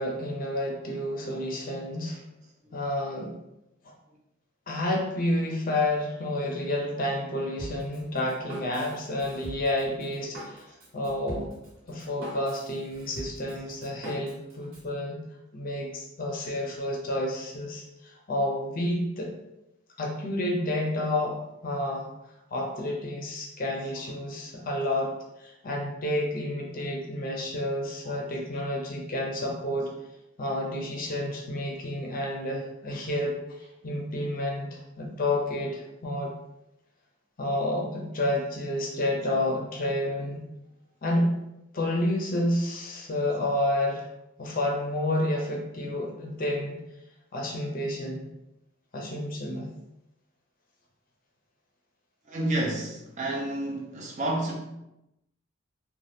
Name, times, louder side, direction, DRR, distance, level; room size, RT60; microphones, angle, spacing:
voice 1, 0.0-2.2 2.7-3.3 4.7-11.5 11.9-15.2 15.5-19.3 20.0-22.1 22.5-25.1 25.4-29.9 30.4-36.3 37.4-40.5 41.0-41.4 41.7-44.1 44.4-46.8 47.3-48.2 48.9-49.7, left 1 dB, 40° left, 0 dB, 0.5 m, -30 dB
Drum kit, 7.6-14.9, equal, 65° right, 1.1 m, -43 dB
voice 2, 52.3-54.6, right 1 dB, 35° right, -1 dB, 0.5 m, -30 dB
2.7 x 2.2 x 3.3 m, 0.90 s
head